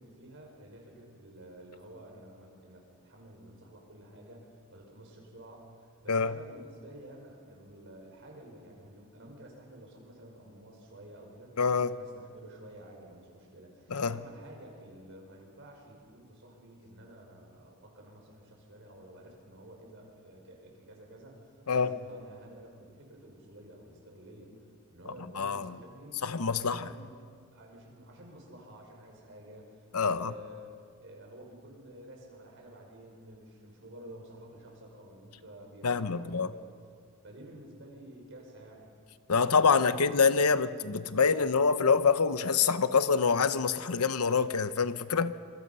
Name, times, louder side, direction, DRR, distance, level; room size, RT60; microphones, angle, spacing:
voice 1, 0.0-26.2 26.6-27.1 27.5-30.7 31.0-36.9 37.2-38.9 39.3-40.4, right 1 dB, 55° right, 5.3 m, -51 dB
voice 2, 11.6-11.9 13.9-14.2 21.7-21.9 25.4-25.7 26.2-26.8 29.9-30.3 35.8-36.5 39.3-45.3, left 5 dB, 85° left, 0.9 m, -26 dB
26.5 x 24.0 x 5.6 m
head